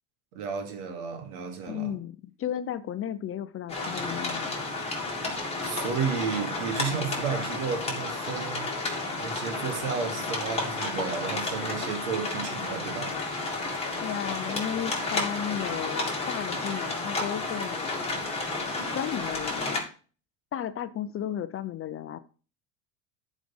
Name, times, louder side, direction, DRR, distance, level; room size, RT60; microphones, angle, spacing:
voice 1, 0.3-1.9 5.6-8.7 9.2-13.2, right 6 dB, 80° right, 2.5 m, -32 dB
voice 2, 1.7-4.6 14.0-17.9 18.9-19.8 20.5-22.2, left 10 dB, 30° left, 0.6 m, -34 dB
sound 1, 3.7-19.8, left 2 dB, 15° left, 3.1 m, -32 dB
10.0 x 5.1 x 5.4 m
supercardioid pair, 115°, 43 cm